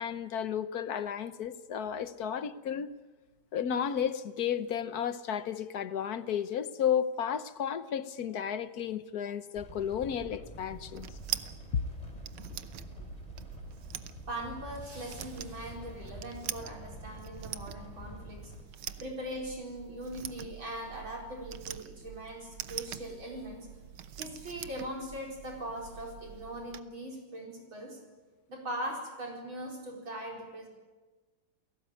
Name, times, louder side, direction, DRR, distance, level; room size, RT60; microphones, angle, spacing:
voice 1, 0.0-2.9 3.5-11.1 11.7-11.8, left 8 dB, 55° left, 1.3 m, -33 dB
sound 1, 9.6-18.6, left 1 dB, 20° left, 3.3 m, -47 dB
sound 2, 10.6-26.8, right 10 dB, 90° right, 1.8 m, -44 dB
voice 2, 14.3-18.5 19.0-23.7 24.2-28.0 28.5-30.7, right 1 dB, 70° right, 5.5 m, -40 dB
28.5 x 17.5 x 9.0 m
omnidirectional pair, 2.2 m